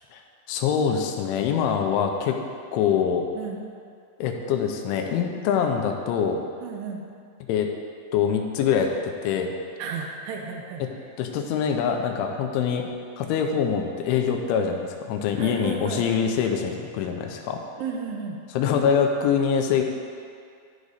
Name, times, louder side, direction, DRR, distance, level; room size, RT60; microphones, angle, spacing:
voice 1, 0.5-2.4 2.7-3.3 4.2-6.4 7.5-7.7 8.1-9.5 10.8-10.9 11.2-12.9 13.2-17.6 18.5-19.8, left 7 dB, 85° left, 3 dB, 3.1 m, -24 dB
voice 2, 6.6-7.0 9.8-10.8 15.4-16.1 17.8-18.4, right 5 dB, 85° right, 1 dB, 2.4 m, -33 dB
13.5 x 4.9 x 4.0 m, 2.3 s
omnidirectional pair, 5.4 m